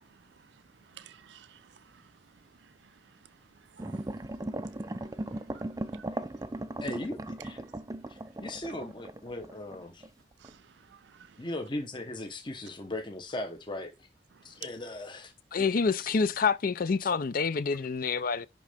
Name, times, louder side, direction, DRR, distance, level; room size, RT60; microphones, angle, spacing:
voice 1, 0.0-6.8 7.4-7.8 8.1-8.4 8.7-8.8 10.4-11.5 14.3-14.6, right 9 dB, 80° right, 0.5 m, -56 dB
sound 1, 3.8-10.1 10.4-10.5, right 1 dB, 20° right, 0.4 m, -38 dB
voice 2, 6.8-7.6 8.1-10.1 11.4-14.1 14.4-15.3 16.0-16.2 17.0-17.1, left 1 dB, 25° left, 0.9 m, -38 dB
voice 3, 15.5-18.5, left 5 dB, 50° left, 0.5 m, -27 dB
10.5 x 3.7 x 3.4 m
head